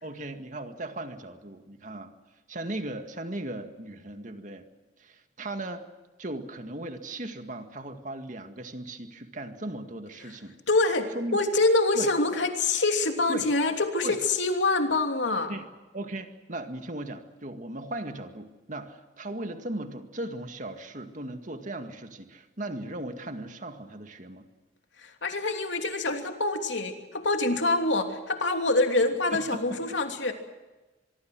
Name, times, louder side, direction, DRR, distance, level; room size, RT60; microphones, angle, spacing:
voice 1, 0.0-2.1 2.5-4.7 5.0-5.8 6.2-10.6 11.1-11.4 11.9-12.1 13.3-13.5 14.0-14.2 15.5-15.7 15.9-24.5 29.3-29.6, right 1 dB, 45° right, 6 dB, 2.0 m, -37 dB
voice 2, 10.7-15.5 25.0-30.3, left 2 dB, 90° left, 4 dB, 3.0 m, -25 dB
24.5 x 23.5 x 6.3 m, 1.1 s
head